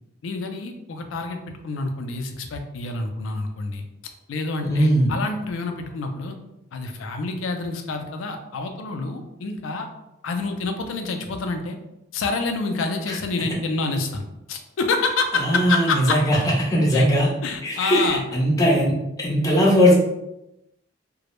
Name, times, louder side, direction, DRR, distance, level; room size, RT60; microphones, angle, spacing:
voice 1, 0.2-3.8 4.3-6.4 6.7-9.9 10.2-11.8 12.1-16.2 16.9-17.1 17.4-18.2, left 3 dB, 75° left, 5 dB, 0.4 m, -27 dB
voice 2, 4.6-5.1 15.3-17.3 17.6-19.9, equal, 20° left, -4 dB, 0.5 m, -19 dB
2.1 x 2.0 x 2.9 m, 0.91 s
head